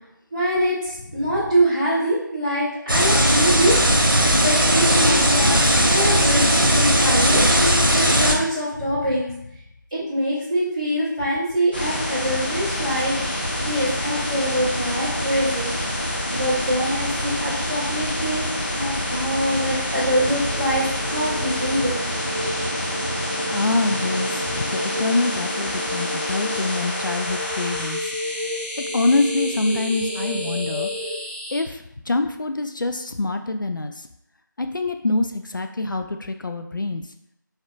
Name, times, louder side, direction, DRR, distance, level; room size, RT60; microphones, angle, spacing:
voice 1, 0.3-9.3 9.9-15.7 16.3-18.5 18.7-22.0, equal, 20° right, -12 dB, 1.3 m, -24 dB
sound 1, 2.9-8.4, equal, 90° right, 0.9 m, -17 dB
sound 2, 11.7-31.6, left 1 dB, 25° left, 0.7 m, -28 dB
sound 3, 20.0-31.2, left 1 dB, 60° right, 0.6 m, -32 dB
voice 2, 23.2-28.1 28.9-30.9 31.5-34.1 34.6-37.0, left 2 dB, 70° left, 6 dB, 0.4 m, -25 dB
4.2 x 3.2 x 2.5 m, 0.81 s
figure-of-eight pair, 170°, 11 cm